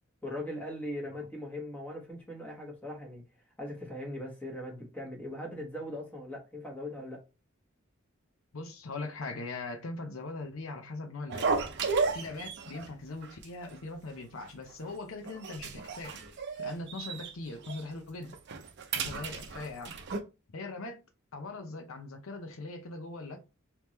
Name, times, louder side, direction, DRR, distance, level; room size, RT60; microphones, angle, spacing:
voice 1, 0.2-3.2 3.6-7.2, left 1 dB, 10° left, 1.2 m, -40 dB
voice 2, 8.5-11.5 12.1-16.2 16.6-18.4 18.9-19.9 20.5-21.0 21.3-23.4, left 3 dB, 70° left, 0.7 m, -40 dB
sound 1, 11.3-12.9 13.2-13.4 13.7-13.8 14.4-14.9 15.2-17.3 17.6-17.8 18.3-20.2, right 4 dB, 55° right, 0.6 m, -34 dB
3.5 x 3.0 x 3.0 m
head